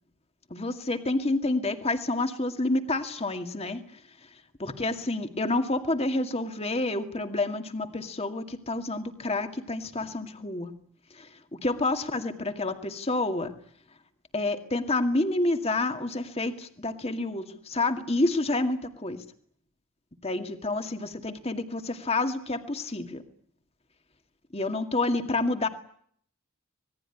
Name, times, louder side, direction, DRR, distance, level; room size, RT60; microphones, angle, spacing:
voice 1, 0.5-3.8 4.6-10.8 11.1-13.6 14.3-19.3 20.2-23.2 24.5-25.7, left 2 dB, 30° left, 7 dB, 2.1 m, -29 dB
26.5 x 20.5 x 9.9 m, 0.63 s
head